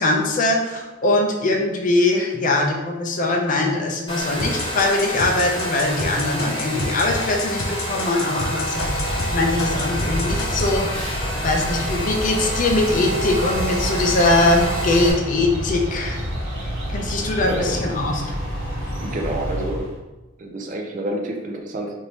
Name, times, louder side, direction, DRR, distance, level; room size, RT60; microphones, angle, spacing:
voice 1, 0.0-16.2 16.9-18.4, left 2 dB, 40° left, 1 dB, 0.5 m, -22 dB
Domestic sounds home sounds, 4.1-15.1, equal, 25° left, 0.8 m, -29 dB
sound 1, 4.4-9.3 9.6-10.7, left 2 dB, 90° left, 0.6 m, -29 dB
sound 2, 8.6-20.0, equal, 85° right, 1.1 m, -28 dB
voice 2, 17.5-17.8 19.0-19.9 20.4-21.9, right 1 dB, 40° right, 2 dB, 0.4 m, -28 dB
3.4 x 2.6 x 2.9 m, 1.1 s
head